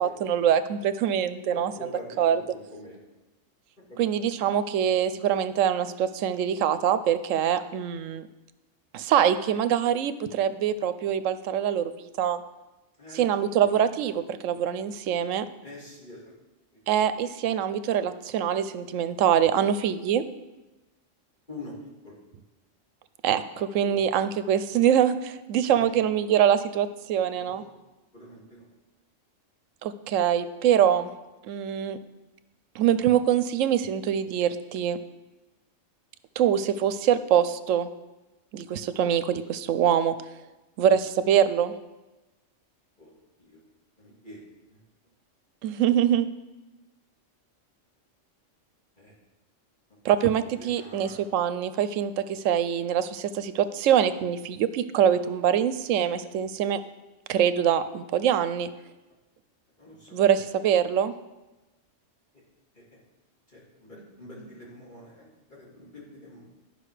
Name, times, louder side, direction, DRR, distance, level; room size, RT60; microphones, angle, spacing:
voice 1, 0.0-1.7 2.2-2.4 4.0-8.3 8.9-12.4 13.1-15.5 16.9-20.2 23.2-27.6 29.8-31.1 31.5-32.0 32.7-35.0 36.4-37.9 38.5-40.2 40.8-41.7 45.6-46.3 50.0-56.8 57.3-58.7 60.1-61.1, right 9 dB, 80° right, 13 dB, 0.9 m, -24 dB
voice 2, 1.5-3.0 3.8-4.3 13.0-13.3 13.5-13.7 15.6-16.3 21.5-22.2 23.8-24.0 25.7-25.9 27.3-27.7 28.1-28.6 40.8-41.0 43.0-43.1 43.4-43.6 44.0-44.4 44.7-44.8 49.0-49.1 49.9-50.0 50.4-51.2 59.8-60.4 62.7-62.9 63.5-66.4, left 1 dB, 35° left, -5 dB, 2.8 m, -45 dB
12.0 x 5.6 x 4.9 m, 1.1 s
omnidirectional pair, 1.3 m